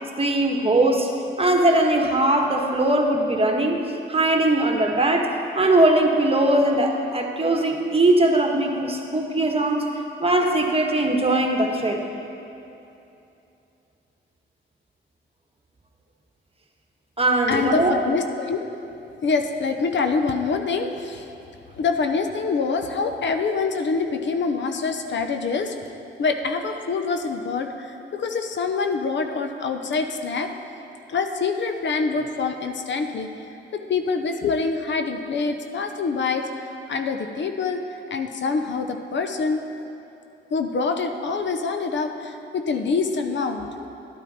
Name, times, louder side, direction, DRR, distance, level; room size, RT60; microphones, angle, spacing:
voice 1, 0.2-1.1 1.4-3.8 4.1-5.3 5.5-9.8 10.2-12.0 17.2-17.9, right 1 dB, 25° right, 2 dB, 1.4 m, -20 dB
voice 2, 17.5-18.7 19.2-21.3 21.7-25.7 26.2-30.5 31.1-33.3 33.7-39.6 40.5-43.9, left 4 dB, 60° left, 6 dB, 0.8 m, -25 dB
12.0 x 9.1 x 4.3 m, 2.8 s
supercardioid pair, 55°, 21 cm